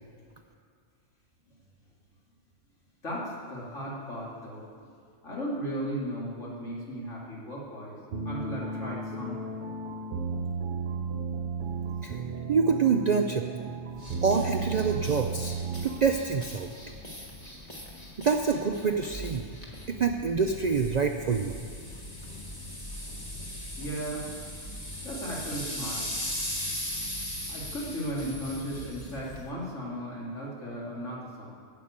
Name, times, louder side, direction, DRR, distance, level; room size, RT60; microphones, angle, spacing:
voice 1, 3.0-4.7 5.2-8.0 8.2-9.6 23.8-24.3 25.0-26.3 27.5-31.5, equal, 65° left, -5 dB, 2.8 m, -36 dB
sound 1, 8.1-16.2, right 4 dB, 50° right, 0.7 m, -34 dB
voice 2, 12.5-13.5 14.2-15.6 15.8-16.7 18.2-19.5 19.9-21.5, right 5 dB, 85° right, 4 dB, 0.3 m, -26 dB
sound 2, 13.9-29.5, equal, 30° left, 1.5 m, -39 dB
9.4 x 6.7 x 8.7 m, 2.3 s
omnidirectional pair, 1.4 m